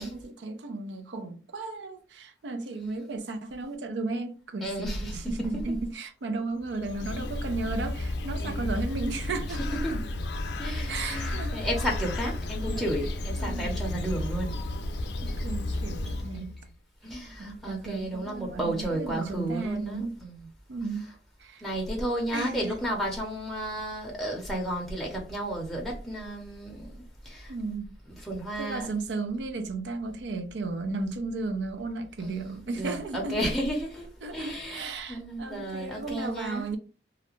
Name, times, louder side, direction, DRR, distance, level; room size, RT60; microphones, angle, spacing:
voice 1, 0.0-10.0 10.9-11.7 12.7-12.9 13.4-13.7 15.2-16.6 17.4-20.2 20.7-21.1 21.4-21.7 22.3-22.8 27.5-27.9 28.6-33.4 34.2-36.8, right 3 dB, 80° right, 0.5 m, -34 dB
voice 2, 4.6-5.2 8.4-8.7 9.8-9.9 10.6-14.5 15.3-15.4 16.1-16.5 17.0-20.3 21.6-26.9 27.2-27.5 28.2-28.9 32.2-36.7, right 1 dB, ahead, 0.6 m, -33 dB
Bird, 6.6-16.6, left 1 dB, 70° left, 0.4 m, -32 dB
2.4 x 2.1 x 3.0 m
head